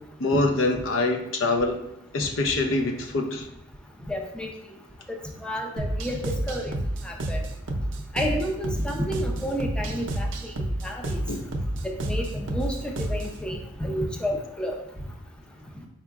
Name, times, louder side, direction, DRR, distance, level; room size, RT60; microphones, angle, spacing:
voice 1, 0.2-1.8 2.1-3.5 11.3-11.4, left 2 dB, 80° left, 5 dB, 0.5 m, -24 dB
voice 2, 4.1-4.5 5.4-6.7 7.0-7.4 8.1-10.5 10.8-11.2 11.8-14.7, equal, 5° left, 1 dB, 0.4 m, -30 dB
sound 1, 5.8-13.4, right 1 dB, 70° right, 0.5 m, -30 dB
4.8 x 4.4 x 2.4 m, 0.85 s
head